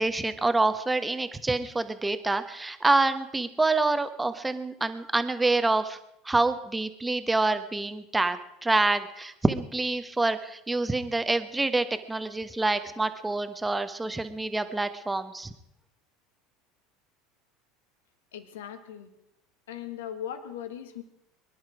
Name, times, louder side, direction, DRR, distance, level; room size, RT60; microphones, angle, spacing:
voice 1, 0.0-6.0 6.2-15.5, right 2 dB, 10° right, 10 dB, 1.3 m, -27 dB
voice 2, 18.3-19.1 19.7-21.0, left 9 dB, 75° left, 9 dB, 1.6 m, -38 dB
23.0 x 11.0 x 5.0 m, 0.82 s
hypercardioid pair, 75°, 0 cm